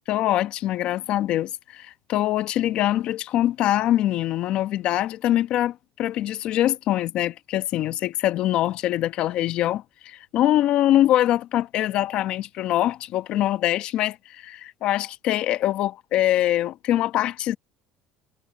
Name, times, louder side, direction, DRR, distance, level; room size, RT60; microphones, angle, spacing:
voice 1, 0.1-17.6, left 13 dB, 55° left, 1.4 m, -23 dB
cardioid pair, 130°, 2 cm